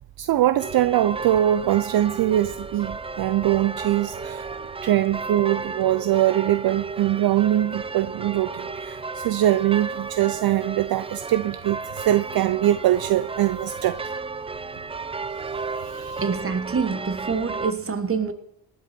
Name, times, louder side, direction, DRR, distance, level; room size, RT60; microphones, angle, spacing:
voice 1, 0.2-4.5 4.8-14.0 15.4-16.2, right 13 dB, 60° right, 0.6 m, -22 dB
sound 1, 0.6-17.7, right 4 dB, 15° right, 0.4 m, -33 dB
voice 2, 16.2-18.3, right 5 dB, 30° right, 1.5 m, -26 dB
18.0 x 10.5 x 4.4 m
cardioid pair, 80°, 41 cm